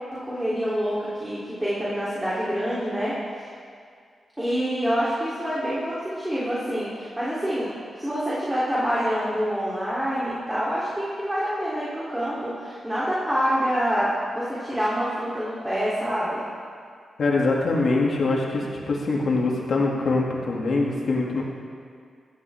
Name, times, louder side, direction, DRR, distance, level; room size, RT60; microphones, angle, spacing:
voice 1, 0.1-3.1 4.4-7.7 8.0-16.4, equal, 15° right, -9 dB, 3.6 m, -26 dB
voice 2, 17.2-21.4, left 3 dB, 65° left, -3 dB, 2.7 m, -23 dB
16.5 x 12.5 x 3.7 m, 2.2 s
cardioid pair, 75°, 0 cm